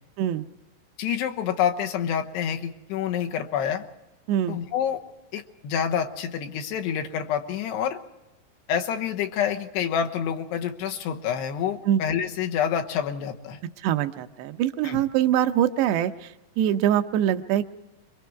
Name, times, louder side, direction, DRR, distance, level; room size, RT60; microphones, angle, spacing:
voice 1, 1.0-3.8 4.5-5.0 5.3-8.0 8.7-13.6 14.8-15.0, left 8 dB, 85° left, 4 dB, 3.3 m, -27 dB
voice 2, 13.8-16.3 16.6-17.7, right 11 dB, 80° right, 8 dB, 2.9 m, -23 dB
26.0 x 22.5 x 4.6 m, 0.99 s
omnidirectional pair, 4.8 m